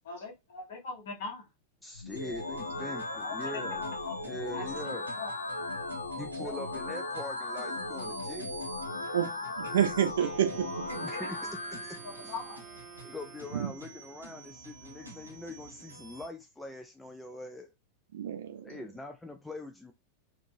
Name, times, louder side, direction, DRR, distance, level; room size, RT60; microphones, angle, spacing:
voice 1, 0.0-1.4 3.1-4.2 4.5-4.6 5.2-5.3 6.4-6.6 9.0-9.3 11.1-11.2 12.3-12.6 18.7-18.8, left 4 dB, 55° left, 1.2 m, -41 dB
voice 2, 1.8-3.8 4.2-5.1 6.2-8.6 11.0-12.3 13.0-17.7 18.6-19.9, left 2 dB, 5° left, 0.3 m, -43 dB
sound 1, 1.9-11.9, left 2 dB, 80° left, 0.5 m, -37 dB
sound 2, 2.1-16.3, right 2 dB, 80° right, 0.9 m, -48 dB
voice 3, 9.6-10.7 11.0-11.1 13.5-13.7 18.1-18.8, right 9 dB, 60° right, 0.6 m, -29 dB
Wind instrument woodwind instrument, 10.2-14.0, right 6 dB, 10° right, 0.8 m, -50 dB
3.7 x 2.4 x 2.5 m
figure-of-eight pair, 90°, 0 cm